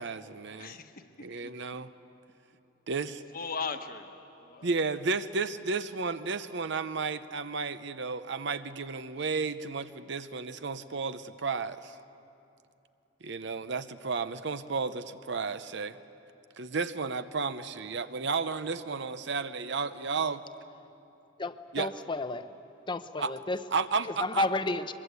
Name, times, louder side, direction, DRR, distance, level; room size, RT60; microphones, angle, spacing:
voice 1, 0.0-0.8 1.2-1.9 2.9-3.2 4.6-12.0 13.2-16.0 16.6-20.4 21.7-21.9 23.2-23.3 23.7-24.4, right 4 dB, 65° right, 12 dB, 0.7 m, -33 dB
voice 2, 0.6-1.3 3.3-4.7, left 5 dB, 45° left, 6 dB, 1.3 m, -38 dB
voice 3, 21.4-22.5 22.9-23.6 24.2-24.9, left 2 dB, 25° left, 10 dB, 0.7 m, -31 dB
22.5 x 22.5 x 8.2 m, 2.8 s
head